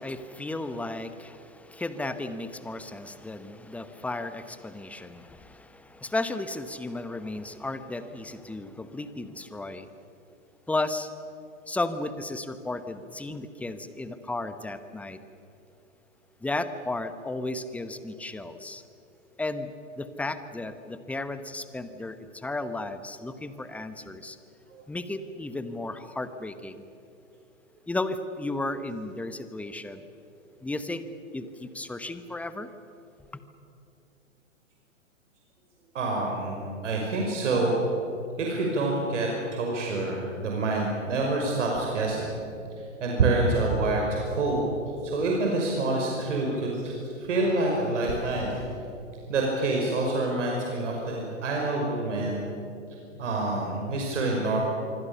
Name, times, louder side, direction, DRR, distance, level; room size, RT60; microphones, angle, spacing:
voice 1, 0.0-9.9 10.7-11.1 11.7-15.2 16.4-18.8 19.4-19.7 20.0-24.4 24.9-26.8 27.9-30.0 30.6-31.0 31.3-32.7, left 2 dB, 5° left, 11 dB, 1.0 m, -34 dB
voice 2, 35.9-37.8 38.4-42.3 43.0-44.6 45.0-46.9 47.2-48.6 49.3-52.5 53.2-54.6, right 2 dB, 65° right, -1 dB, 5.6 m, -27 dB
26.0 x 24.5 x 7.0 m, 2.8 s
figure-of-eight pair, 115°, 40 cm